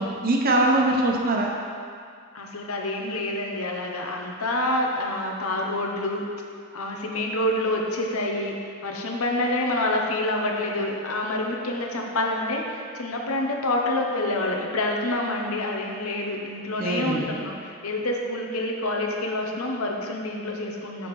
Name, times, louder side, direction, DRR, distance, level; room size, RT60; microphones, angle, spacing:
voice 1, 0.0-1.5 16.8-17.3, right 2 dB, 45° right, 0 dB, 1.0 m, -22 dB
voice 2, 2.3-6.3 6.7-21.1, left 1 dB, 90° left, 1 dB, 1.0 m, -27 dB
7.8 x 5.1 x 4.8 m, 2.2 s
head